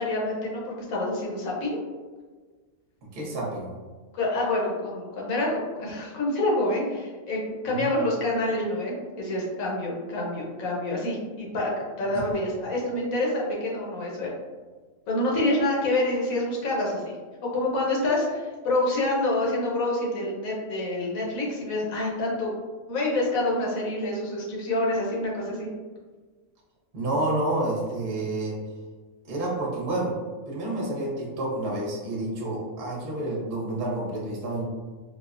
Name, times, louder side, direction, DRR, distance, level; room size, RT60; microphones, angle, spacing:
voice 1, 0.0-1.8 4.1-11.7 12.0-14.3 15.1-17.1 17.4-22.5 22.9-25.7, left 1 dB, 85° left, -3 dB, 1.3 m, -27 dB
voice 2, 3.0-3.7 7.7-7.9 12.1-12.4 26.9-28.6 29.3-30.2 30.5-34.6, right 2 dB, 45° right, -4 dB, 0.9 m, -29 dB
4.4 x 2.1 x 2.5 m, 1.4 s
omnidirectional pair, 1.4 m